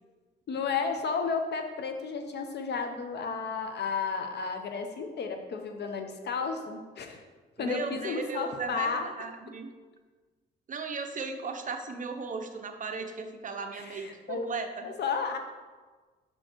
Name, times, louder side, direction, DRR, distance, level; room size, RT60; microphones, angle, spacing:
voice 1, 0.5-7.2 7.6-9.1 13.7-14.5 14.8-15.4, left 5 dB, 60° left, 5 dB, 0.8 m, -32 dB
voice 2, 7.6-9.7 10.7-14.9, right 4 dB, 40° right, 6 dB, 0.7 m, -36 dB
6.1 x 4.4 x 4.5 m, 1.4 s
cardioid pair, 90°, 20 cm